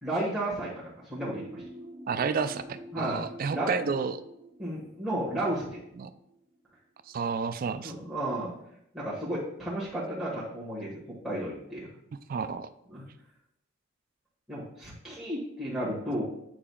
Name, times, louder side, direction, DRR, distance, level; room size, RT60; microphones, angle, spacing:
voice 1, 0.0-1.6 2.9-3.2 3.5-3.9 4.6-5.8 7.8-8.5 8.9-11.9 12.9-13.0 14.5-16.2, right 1 dB, ahead, -9 dB, 1.5 m, -33 dB
sound 1, 1.2-6.7, right 1 dB, 30° right, 0.7 m, -47 dB
voice 2, 2.1-4.2 6.0-6.1 7.1-8.0 12.3-12.7, right 5 dB, 45° right, 11 dB, 0.3 m, -30 dB
8.7 x 4.9 x 2.3 m, 0.79 s
head